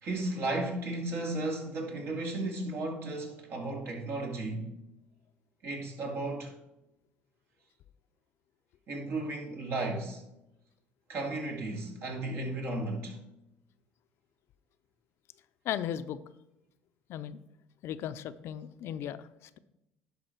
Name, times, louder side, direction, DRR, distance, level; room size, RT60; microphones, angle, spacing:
voice 1, 0.0-4.7 5.6-6.5 8.9-10.2 11.1-13.2, right 2 dB, 60° right, 2.4 m, -34 dB
voice 2, 15.6-16.2 17.1-17.4 17.8-19.6, left 10 dB, 65° left, 0.5 m, -36 dB
11.0 x 5.2 x 4.6 m
cardioid pair, 105°, 5 cm